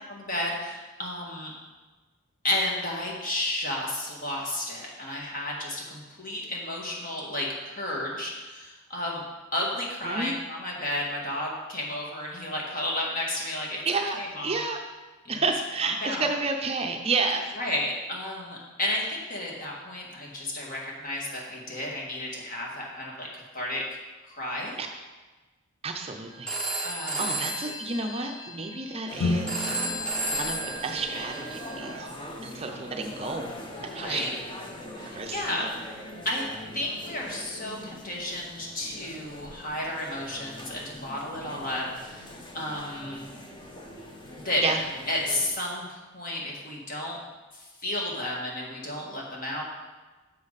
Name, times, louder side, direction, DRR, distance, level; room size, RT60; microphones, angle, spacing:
voice 1, 0.1-1.5 2.4-9.2 9.5-14.6 15.2-15.5 15.8-16.3 17.6-24.0 24.3-24.8 26.8-27.5 33.8-34.3 35.0-35.7 36.3-36.4 36.7-42.3 42.5-43.3 44.3-44.6 45.1-47.2 47.5-49.6, left 1 dB, 40° left, -2 dB, 2.0 m, -32 dB
voice 2, 10.1-10.4 13.9-14.2 14.4-14.8 15.3-17.5 24.8-24.9 25.8-26.6 27.2-30.0 30.3-32.1 32.4-33.5 33.9-34.3 35.1-35.7 44.6-44.8, right 3 dB, 30° right, 3 dB, 0.6 m, -30 dB
Telephone, 26.5-32.0, right 1 dB, 5° left, 1.3 m, -33 dB
sound 1, 29.1-45.5, left 1 dB, 20° left, 1.0 m, -42 dB
sound 2, 29.2-31.6, left 2 dB, 65° left, 1.2 m, -32 dB
10.5 x 7.1 x 4.1 m, 1.2 s
head